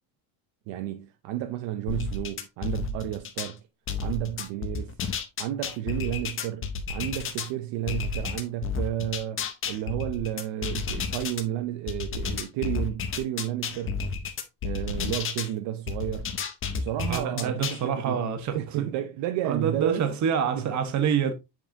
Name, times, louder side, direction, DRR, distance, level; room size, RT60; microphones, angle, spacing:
voice 1, 0.7-3.6 4.0-5.0 5.4-14.0 14.6-16.3 16.7-18.2 18.5-20.7, right 12 dB, 65° right, 0.7 m, -32 dB
sound 1, 1.9-3.5 3.9-7.5 7.9-11.4 11.9-15.5 15.9-17.8, left 5 dB, 30° left, 0.7 m, -31 dB
voice 2, 17.1-18.9 19.4-21.3, right 7 dB, 40° right, 1.1 m, -27 dB
7.5 x 5.4 x 2.7 m
cardioid pair, 175°, 45 cm